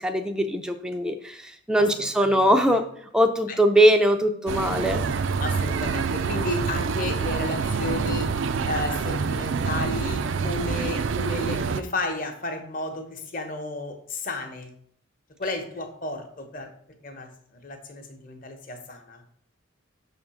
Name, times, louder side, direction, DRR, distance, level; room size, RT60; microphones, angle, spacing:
voice 1, 0.0-2.8 3.1-5.0, equal, 5° right, 5 dB, 0.4 m, -21 dB
voice 2, 1.8-2.8 3.5-3.6 5.4-8.3 8.7-14.7 15.4-16.7 17.0-19.2, left 2 dB, 40° left, 5 dB, 1.0 m, -33 dB
sound 1, 4.5-11.8, right 5 dB, 65° right, 0.4 m, -26 dB
6.3 x 3.7 x 6.1 m, 0.64 s
head